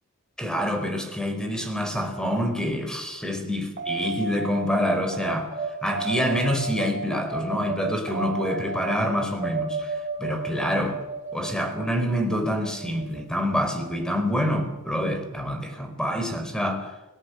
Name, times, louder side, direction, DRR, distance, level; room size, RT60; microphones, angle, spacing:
voice 1, 0.4-5.5 5.8-11.0 11.3-16.9, equal, 5° left, 6 dB, 4.5 m, -27 dB
sound 1, 3.8-14.5, right 3 dB, 40° right, 3.9 m, -33 dB
29.5 x 19.0 x 8.4 m, 1.0 s
head